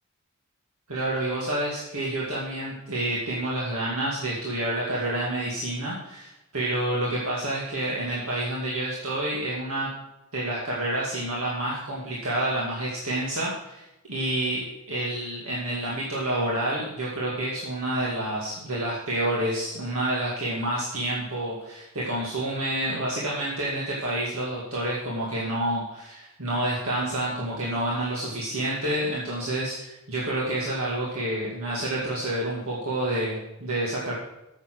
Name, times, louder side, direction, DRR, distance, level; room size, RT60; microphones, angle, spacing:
voice 1, 0.9-9.9 10.3-34.1, right 1 dB, 75° right, -6 dB, 2.2 m, -28 dB
9.4 x 7.5 x 6.0 m, 0.93 s
head